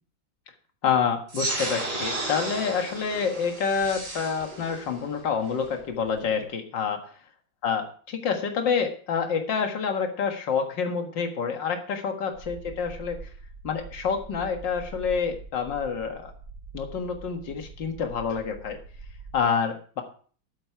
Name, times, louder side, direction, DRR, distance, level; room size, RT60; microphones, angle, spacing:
voice 1, 0.8-7.1 7.6-13.3 13.6-16.3 16.7-18.8 19.3-20.0, left 6 dB, 65° left, 4 dB, 2.3 m, -28 dB
sound 1, 1.3-6.3, right 2 dB, 55° right, 3.9 m, -34 dB
sound 2, 12.3-19.4, right 4 dB, 70° right, 5.4 m, -44 dB
12.0 x 8.7 x 4.6 m, 0.43 s
omnidirectional pair, 2.1 m